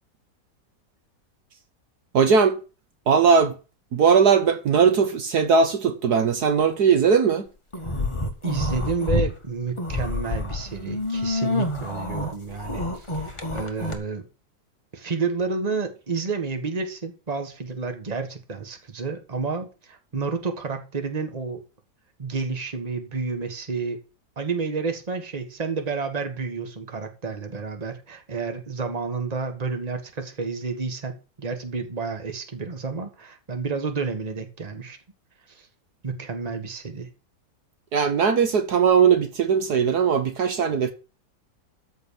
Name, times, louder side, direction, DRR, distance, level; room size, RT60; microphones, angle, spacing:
voice 1, 2.1-2.6 3.1-3.5 3.9-7.4 37.9-40.9, right 6 dB, 65° right, 1.5 m, -19 dB
sound 1, 7.7-9.3 9.7-13.9, left 2 dB, 20° left, 1.4 m, -28 dB
voice 2, 8.4-14.2 14.9-21.6 22.2-24.0 24.4-35.0 35.5-35.7 36.0-37.1, right 4 dB, 25° right, 1.5 m, -30 dB
13.5 x 4.7 x 7.1 m
omnidirectional pair, 1.9 m